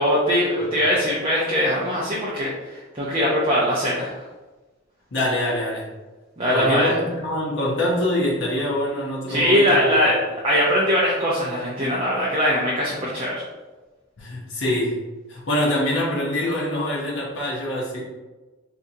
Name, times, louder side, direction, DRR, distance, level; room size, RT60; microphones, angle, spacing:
voice 1, 0.0-4.1 6.4-7.0 9.3-13.3, equal, 25° right, -6 dB, 0.5 m, -21 dB
voice 2, 5.1-5.9 6.5-9.8 14.2-15.0 15.3-18.0, left 1 dB, 70° left, -5 dB, 0.8 m, -24 dB
4.4 x 2.6 x 2.7 m, 1.2 s
head